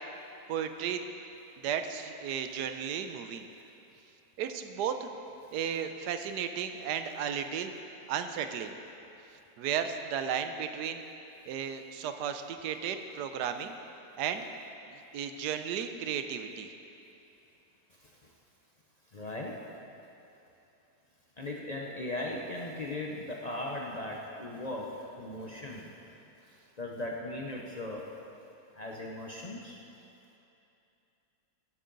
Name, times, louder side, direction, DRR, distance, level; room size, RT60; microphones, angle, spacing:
voice 1, 0.5-1.0 1.6-3.4 4.4-5.1 5.5-7.7 8.1-8.7 9.6-11.0 11.5-13.7 14.2-14.5 15.1-16.7, right 8 dB, 75° right, 8 dB, 1.2 m, -34 dB
voice 2, 19.1-19.6 21.4-25.9 26.8-28.1 28.8-29.8, left 1 dB, 60° left, -2 dB, 0.4 m, -38 dB
14.5 x 8.4 x 3.9 m, 2.8 s
omnidirectional pair, 1.8 m